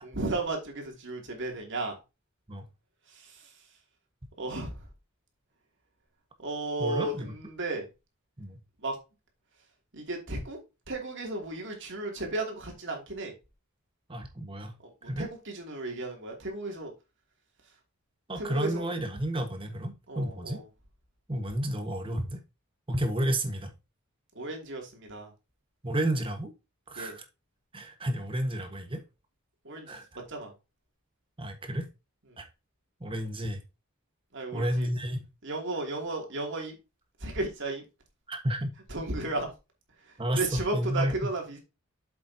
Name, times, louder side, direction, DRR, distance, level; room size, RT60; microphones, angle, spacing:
voice 1, 0.0-2.0 3.1-3.5 4.4-4.8 6.4-7.9 8.8-9.0 9.9-10.6 10.9-13.3 14.8-16.9 18.4-18.8 20.1-20.7 24.3-25.3 26.9-27.2 29.6-30.0 30.3-30.5 32.3-32.4 34.3-34.9 35.4-36.8 37.2-37.8 38.9-39.5 40.0-41.6, right 2 dB, 55° right, 1 dB, 2.7 m, -34 dB
voice 2, 6.8-7.3 8.4-8.6 14.1-14.7 15.1-15.3 18.3-20.6 21.3-22.4 22.9-23.7 25.8-26.5 26.9-27.2 27.7-29.0 29.9-30.0 31.4-31.9 32.4-32.5 33.0-33.6 34.5-35.2 38.3-38.7 40.2-41.1, right 1 dB, 25° right, 5 dB, 1.4 m, -31 dB
7.7 x 7.5 x 2.8 m, 0.26 s
head